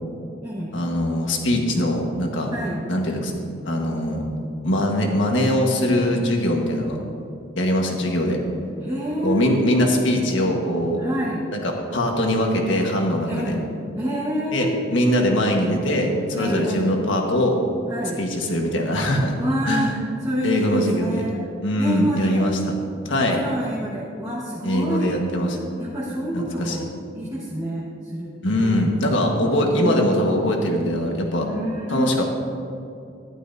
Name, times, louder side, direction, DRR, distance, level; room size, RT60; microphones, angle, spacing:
voice 1, 0.7-2.5 2.9-3.3 3.6-4.2 4.6-7.0 7.6-8.4 9.2-11.0 11.5-13.6 14.5-17.6 18.2-19.4 19.7-19.9 20.4-21.2 21.6-22.6 23.1-23.4 24.6-25.6 26.3-26.8 28.4-31.5 31.9-32.2, left 1 dB, 80° left, 1 dB, 1.5 m, -22 dB
voice 2, 2.5-2.8 8.8-9.6 11.0-11.5 13.3-13.6 14.0-14.7 16.3-16.9 17.9-18.2 19.4-21.4 21.8-22.5 23.2-25.2 25.8-26.9 27.1-28.9 29.7-30.1 31.4-32.2, equal, 15° right, -8 dB, 1.4 m, -28 dB
14.0 x 11.0 x 2.7 m, 2.5 s
head